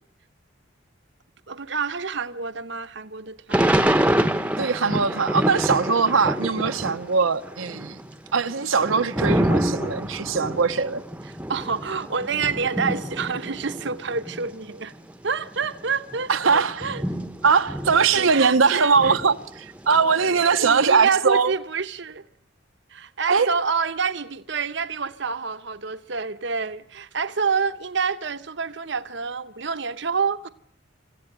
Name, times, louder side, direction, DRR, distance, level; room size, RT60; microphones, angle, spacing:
voice 1, 1.5-3.9 9.3-9.5 11.3-14.9 15.2-17.0 18.3-19.1 20.6-22.2 22.9-30.5, right 5 dB, 60° right, 0.9 m, -28 dB
Thunder / Rain, 3.5-7.1 7.4-14.5 15.1-15.2 15.4-18.6 18.9-20.7, right 1 dB, 5° right, 0.9 m, -27 dB
voice 2, 4.6-8.0 8.3-11.0 16.3-16.9 17.4-21.5 23.3-23.5, right 5 dB, 85° right, 0.9 m, -21 dB
26.5 x 15.0 x 9.1 m
head